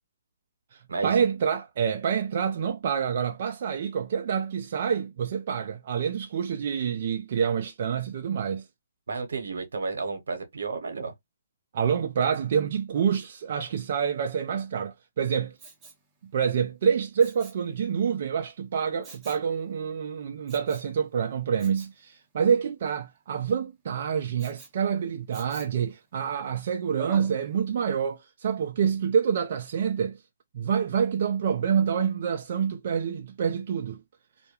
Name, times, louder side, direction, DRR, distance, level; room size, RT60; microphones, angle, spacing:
voice 1, 0.7-8.6 11.7-15.6 16.3-30.2 30.5-34.0, right 7 dB, 50° right, 0.3 m, -27 dB
voice 2, 9.1-11.1, right 4 dB, 80° right, 0.8 m, -32 dB
Respiratory sounds, 15.6-16.1 17.2-17.7 19.0-19.5 20.5-20.9 21.6-21.9 24.4-24.8 25.3-25.8 27.0-27.4 27.9-28.0, right 4 dB, 15° right, 0.6 m, -46 dB
2.2 x 2.1 x 2.9 m
hypercardioid pair, 155°, 0 cm